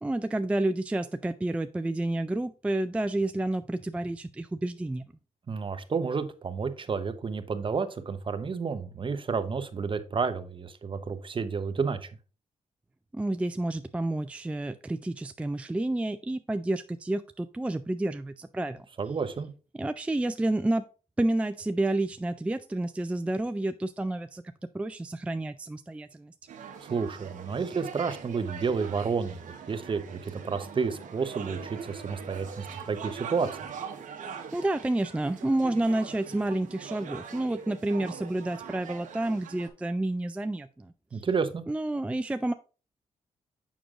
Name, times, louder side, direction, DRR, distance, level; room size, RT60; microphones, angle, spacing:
voice 1, 0.0-5.0 13.1-18.9 19.7-20.8 21.2-24.4 24.7-26.3 34.5-41.2 41.7-42.5, right 1 dB, 10° right, 10 dB, 0.3 m, -30 dB
voice 2, 5.5-12.1 19.0-19.5 26.8-33.7 41.1-41.6, right 5 dB, 40° right, 10 dB, 0.8 m, -31 dB
sound 1, 26.5-39.7, right 7 dB, 70° right, 1.0 m, -42 dB
7.1 x 6.1 x 2.5 m, 0.34 s
cardioid pair, 70°, 14 cm